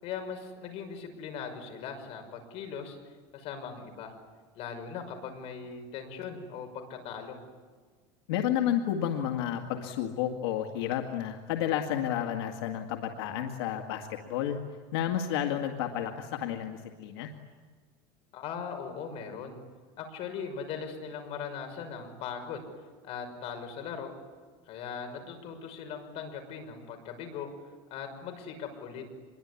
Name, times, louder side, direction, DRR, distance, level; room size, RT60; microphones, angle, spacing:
voice 1, 0.0-3.0 3.3-4.1 4.5-7.4 18.3-19.6 20.0-22.7 23.0-24.1 24.7-27.5 27.9-29.0, left 6 dB, 50° left, 6 dB, 5.8 m, -39 dB
voice 2, 8.3-14.6 14.9-17.3, left 10 dB, 85° left, 4 dB, 2.1 m, -31 dB
26.0 x 22.5 x 9.9 m, 1.5 s
cardioid pair, 150°, 13 cm